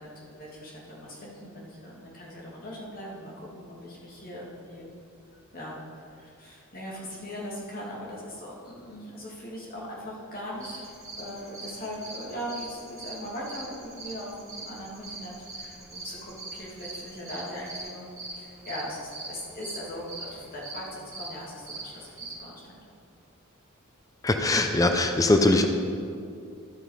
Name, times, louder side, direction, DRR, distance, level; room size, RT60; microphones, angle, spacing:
voice 1, 0.0-4.9 5.5-5.8 6.1-22.8 25.3-25.7, equal, 40° left, -4 dB, 2.1 m, -40 dB
sound 1, 10.5-22.4, right 2 dB, 15° right, 1.9 m, -42 dB
voice 2, 24.2-25.7, left 2 dB, 15° left, 5 dB, 0.5 m, -21 dB
12.5 x 5.4 x 4.8 m, 2.5 s
head